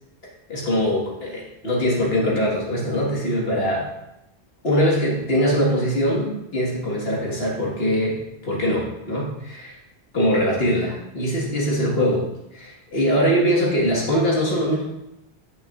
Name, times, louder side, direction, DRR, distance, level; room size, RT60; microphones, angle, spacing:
voice 1, 0.2-3.9 4.6-8.2 8.4-9.8 10.1-12.3 12.5-14.8, equal, 70° left, -3 dB, 2.0 m, -22 dB
9.4 x 5.4 x 2.5 m, 0.90 s
omnidirectional pair, 1.0 m